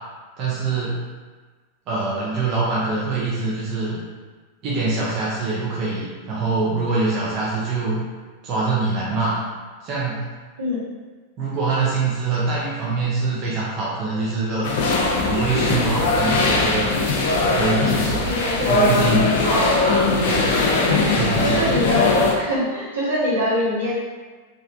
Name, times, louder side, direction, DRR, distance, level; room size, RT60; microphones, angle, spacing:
voice 1, 0.4-1.0 1.9-4.0 4.6-8.0 8.4-9.4 9.8-10.2 11.4-14.9 15.2-16.9 17.5-18.3 18.6-19.3 19.8-20.5 21.1-21.7, right 3 dB, 40° right, -7 dB, 0.6 m, -24 dB
sound 1, 14.6-22.3, left 3 dB, 55° left, 0.4 m, -20 dB
voice 2, 18.2-19.0 19.4-19.8 21.4-23.9, left 1 dB, 70° right, -9 dB, 1.2 m, -23 dB
3.2 x 2.6 x 2.5 m, 1.4 s
figure-of-eight pair, 90°, 0 cm